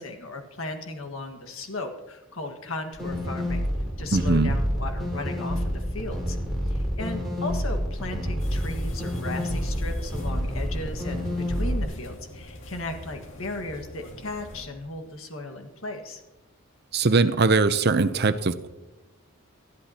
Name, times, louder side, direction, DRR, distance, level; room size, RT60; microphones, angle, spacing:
voice 1, 0.0-3.7 4.0-6.4 6.7-16.2, left 2 dB, 80° left, 4 dB, 1.7 m, -36 dB
sound 1, 2.9-11.8, equal, ahead, 4.7 m, -28 dB
voice 2, 4.1-4.6 16.9-18.7, right 3 dB, 50° right, 12 dB, 0.6 m, -21 dB
sound 2, 8.4-14.7, left 1 dB, 60° left, 2.1 m, -41 dB
19.5 x 13.0 x 2.9 m, 1.1 s
head